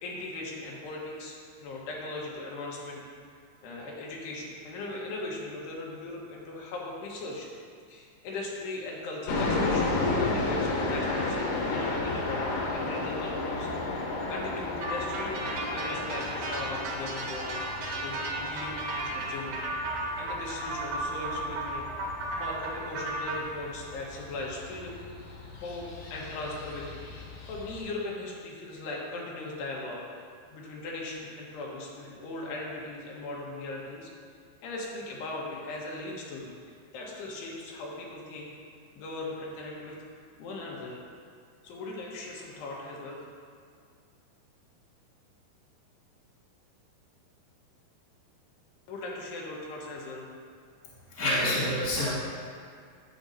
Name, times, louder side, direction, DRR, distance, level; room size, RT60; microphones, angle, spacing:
voice 1, 0.0-3.0 3.6-7.5 7.9-14.0 14.3-25.0 25.6-30.0 30.5-34.1 34.6-38.5 38.9-40.0 40.4-41.0 41.6-43.2 48.9-50.3, left 2 dB, 90° left, -3 dB, 3.4 m, -39 dB
sound 1, 9.3-27.8, left 2 dB, 65° left, 2.2 m, -33 dB
sound 2, 14.8-23.4, right 2 dB, 80° right, 3.3 m, -34 dB
voice 2, 51.1-52.1, left 1 dB, 20° right, -10 dB, 0.5 m, -27 dB
11.5 x 7.7 x 2.7 m, 2.2 s
omnidirectional pair, 4.6 m